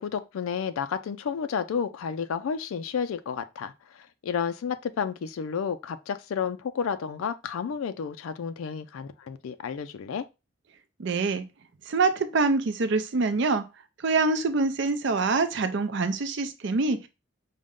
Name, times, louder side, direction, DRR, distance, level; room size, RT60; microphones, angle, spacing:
voice 1, 0.0-10.2, left 6 dB, 90° left, 0.4 m, -31 dB
voice 2, 11.0-11.4 11.9-13.6 14.0-17.1, right 3 dB, 60° right, 0.5 m, -25 dB
5.1 x 2.2 x 3.5 m
head